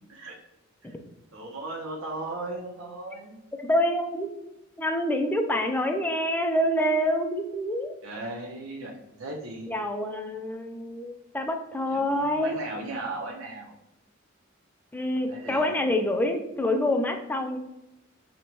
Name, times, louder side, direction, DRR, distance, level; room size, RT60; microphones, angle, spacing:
voice 1, 1.3-3.4 8.0-9.8 11.9-13.7 15.3-15.8, right 2 dB, 90° right, -2 dB, 0.6 m, -37 dB
voice 2, 3.6-4.3 4.8-7.9 9.7-12.6 14.9-17.6, left 1 dB, 10° left, 5 dB, 0.3 m, -26 dB
5.1 x 2.1 x 2.9 m, 0.91 s
head